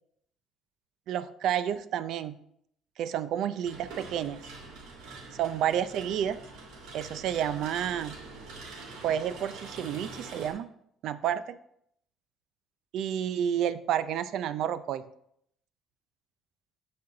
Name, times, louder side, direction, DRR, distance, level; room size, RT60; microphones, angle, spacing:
voice 1, 1.1-2.4 3.0-4.4 5.4-6.4 6.9-8.2 9.0-10.6 11.0-11.4 12.9-15.0, right 9 dB, 60° right, 13 dB, 0.4 m, -30 dB
sound 1, 3.6-10.5, right 3 dB, 90° right, 2.7 m, -45 dB
11.0 x 4.4 x 3.8 m, 0.72 s
cardioid pair, 170°, 0 cm